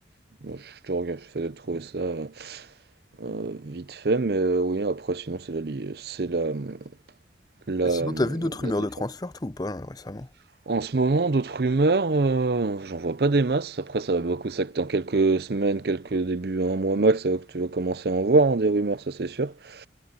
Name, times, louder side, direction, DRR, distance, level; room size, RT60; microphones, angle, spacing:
voice 1, 0.4-2.7 3.2-6.8 7.7-8.2 10.7-19.9, right 3 dB, 60° right, 0.6 m, -25 dB
voice 2, 7.8-10.3, left 1 dB, 20° left, 0.5 m, -29 dB
head